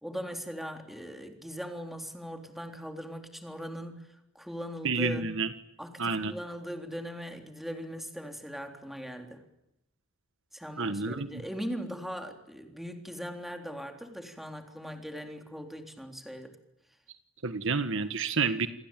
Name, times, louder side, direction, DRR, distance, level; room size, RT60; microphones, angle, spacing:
voice 1, 0.0-5.2 5.8-9.4 10.5-16.6, equal, ahead, 4 dB, 3.7 m, -40 dB
voice 2, 4.8-5.5 6.0-6.3 10.8-11.3 17.4-18.7, right 4 dB, 65° right, 11 dB, 1.5 m, -29 dB
28.5 x 21.5 x 9.1 m, 0.84 s
head